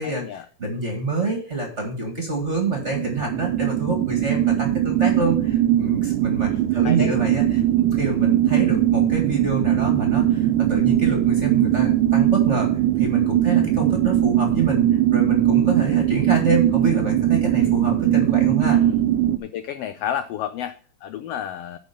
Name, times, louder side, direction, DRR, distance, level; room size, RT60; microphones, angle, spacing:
voice 1, 0.0-0.5 6.4-7.1 18.7-19.0 19.4-21.8, left 10 dB, 85° left, 10 dB, 1.3 m, -31 dB
voice 2, 0.6-7.6 7.9-14.8 15.1-18.8, right 3 dB, 30° right, 2 dB, 1.6 m, -27 dB
sound 1, 2.7-19.4, right 12 dB, 80° right, 2.2 m, -20 dB
10.5 x 4.7 x 6.8 m, 0.43 s
omnidirectional pair, 3.6 m